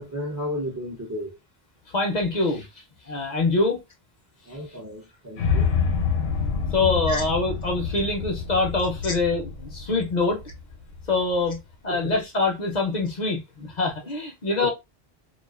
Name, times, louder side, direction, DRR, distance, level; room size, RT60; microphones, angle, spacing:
voice 1, 0.0-1.4 4.5-5.7 7.1-7.2 9.0-9.1 11.9-12.1 14.6-14.7, left 1 dB, 30° right, 0.3 m, -33 dB
voice 2, 1.9-2.7 3.1-3.8 6.7-10.4 11.1-14.7, left 3 dB, 50° left, 0.6 m, -24 dB
sound 1, 5.4-11.5, left 5 dB, 80° left, 0.9 m, -27 dB
2.4 x 2.3 x 2.3 m
omnidirectional pair, 1.1 m